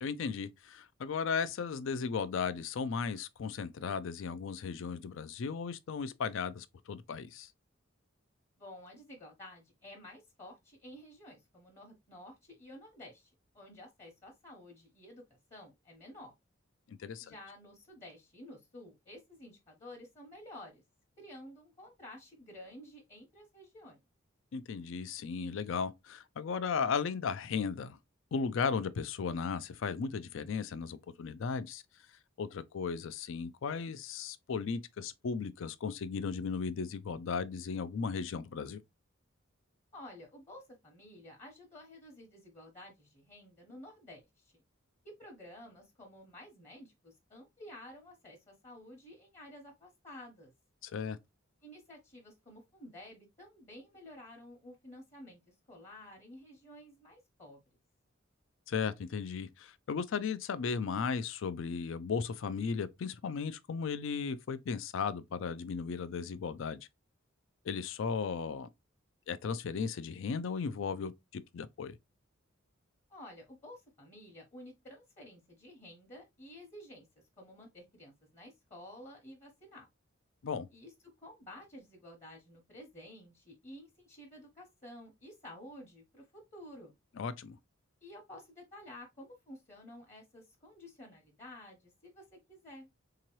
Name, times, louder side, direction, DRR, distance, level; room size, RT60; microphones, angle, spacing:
voice 1, 0.0-7.5 16.9-17.3 24.5-28.0 28.3-31.8 32.4-38.8 50.8-51.2 58.7-66.9 67.6-68.7 69.3-72.0 80.4-80.7 87.2-87.6, left 5 dB, 65° left, 0.4 m, -36 dB
voice 2, 8.6-15.2 15.5-16.3 17.2-20.8 21.2-24.0 39.9-44.5 45.0-50.5 51.6-57.6 73.1-77.1 77.4-79.9 80.7-80.9 81.2-86.9 88.0-92.9, left 1 dB, 35° left, 0.9 m, -52 dB
3.7 x 2.9 x 3.0 m
head